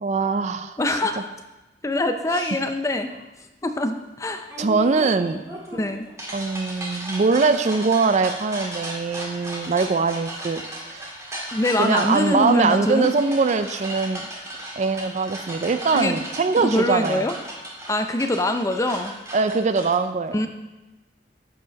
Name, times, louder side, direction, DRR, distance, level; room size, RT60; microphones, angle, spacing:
voice 1, 0.0-0.8 2.3-2.4 4.6-5.4 6.3-10.6 10.9-11.1 11.8-14.3 14.8-17.2 19.3-20.4, right 4 dB, 40° right, 10 dB, 0.4 m, -22 dB
voice 2, 0.8-1.3 1.8-3.1 3.6-4.5 5.7-6.1 11.5-13.1 15.9-16.2 16.6-17.3 17.9-19.1 20.3-20.5, left 1 dB, 15° left, 7 dB, 0.5 m, -23 dB
sound 1, 2.3-2.5 4.5-19.9, right 1 dB, 15° right, 1.6 m, -36 dB
8.2 x 4.9 x 5.1 m, 1.1 s
head